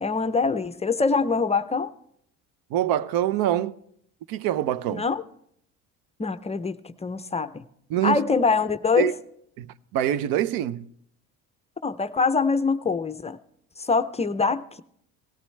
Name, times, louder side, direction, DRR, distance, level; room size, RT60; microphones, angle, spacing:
voice 1, 0.0-1.9 4.9-5.2 6.2-7.6 8.0-9.1 11.8-13.4 13.8-14.8, left 4 dB, 20° left, 0.5 m, -24 dB
voice 2, 2.7-3.7 4.3-5.0 7.9-8.2 9.0-9.1 9.6-10.8, right 12 dB, 70° right, 0.7 m, -25 dB
18.5 x 14.0 x 3.2 m
supercardioid pair, 95°, 37 cm